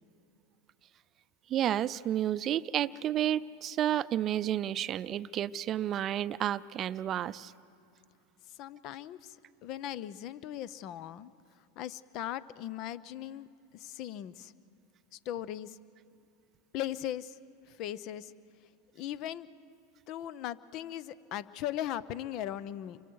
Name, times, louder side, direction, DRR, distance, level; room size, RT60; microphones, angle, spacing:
voice 1, 1.5-7.5, right 11 dB, 40° right, 16 dB, 0.5 m, -31 dB
voice 2, 8.6-9.3 9.6-11.3 11.8-13.5 13.7-14.5 15.1-15.8 16.7-17.4 17.8-18.3 19.0-19.5 20.1-23.0, left 12 dB, 50° left, 17 dB, 0.7 m, -38 dB
29.5 x 24.5 x 4.7 m, 2.6 s
hypercardioid pair, 100°, 0 cm